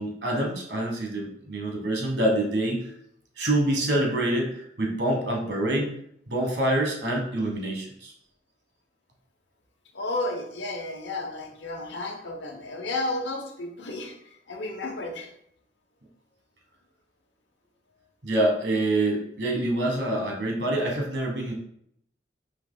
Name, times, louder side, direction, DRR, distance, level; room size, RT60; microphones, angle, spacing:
voice 1, 0.0-2.8 3.4-5.9 6.3-8.1 18.2-21.5, right 1 dB, 75° right, 0 dB, 1.3 m, -26 dB
voice 2, 9.9-14.1 14.5-15.3, left 2 dB, 85° left, 2 dB, 1.0 m, -32 dB
4.6 x 2.9 x 3.8 m, 0.70 s
head